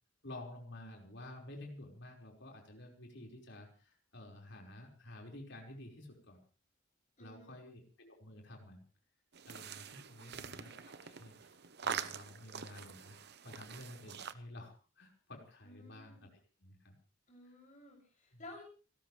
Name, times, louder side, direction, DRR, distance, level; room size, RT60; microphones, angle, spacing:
voice 1, 0.2-6.4 7.2-8.8 9.5-17.0 18.3-18.4, left 1 dB, 55° left, 1 dB, 5.2 m, -51 dB
voice 2, 7.2-7.6 10.1-10.6 15.6-16.3 17.3-18.6, left 1 dB, 35° left, -1 dB, 7.1 m, -55 dB
sound 1, 9.3-14.3, right 7 dB, 50° right, 0.9 m, -44 dB
29.5 x 13.5 x 3.4 m, 0.36 s
head